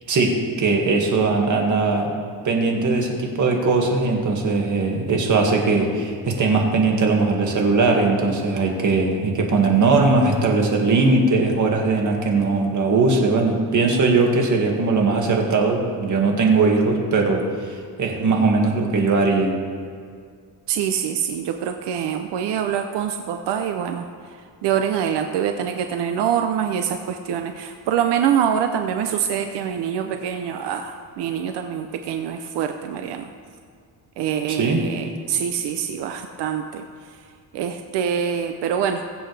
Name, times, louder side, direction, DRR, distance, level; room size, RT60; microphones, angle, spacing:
voice 1, 0.6-2.1 2.4-17.4 17.7-19.5 34.5-34.8, right 3 dB, 50° right, 1 dB, 2.1 m, -19 dB
voice 2, 20.7-24.1 24.6-33.3 34.2-36.8 37.5-39.0, right 8 dB, 85° right, 6 dB, 0.8 m, -25 dB
22.5 x 7.9 x 3.4 m, 2.1 s
cardioid pair, 130°, 40 cm